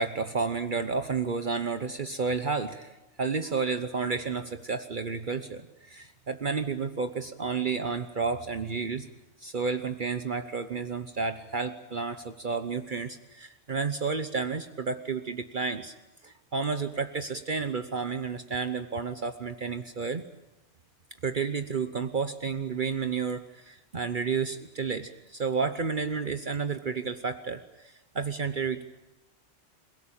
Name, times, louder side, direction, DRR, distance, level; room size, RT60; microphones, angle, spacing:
voice 1, 0.0-9.1 9.4-15.9 16.2-20.2 21.2-28.8, right 5 dB, 50° right, 9 dB, 1.1 m, -31 dB
27.0 x 17.5 x 8.8 m, 0.99 s
omnidirectional pair, 1.1 m